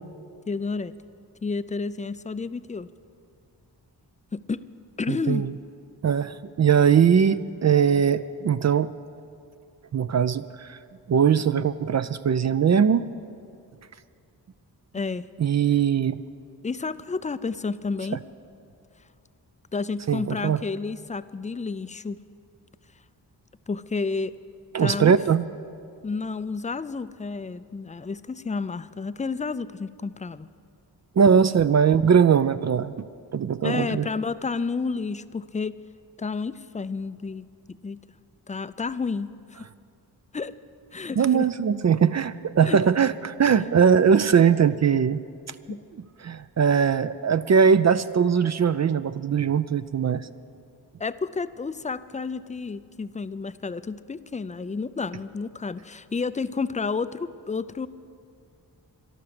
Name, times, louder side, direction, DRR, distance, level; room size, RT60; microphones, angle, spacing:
voice 1, 0.5-0.9 1.4-2.9 4.3-4.7 5.0-5.5 14.9-15.3 16.6-18.2 19.7-22.2 23.7-24.3 24.8-25.1 26.0-30.5 33.6-35.8 36.2-37.5 37.8-38.0 38.5-39.7 40.3-40.5 40.9-41.5 42.6-42.8 45.7-45.8 51.0-57.9, left 4 dB, 20° left, 15 dB, 0.4 m, -30 dB
voice 2, 5.1-5.5 6.0-8.9 9.9-10.8 11.1-13.1 15.4-16.2 20.1-20.6 24.7-25.4 31.2-33.1 33.3-34.1 41.2-45.2 46.2-50.3, right 7 dB, 40° right, 14 dB, 0.4 m, -20 dB
12.5 x 12.0 x 6.7 m, 2.4 s
cardioid pair, 50°, 43 cm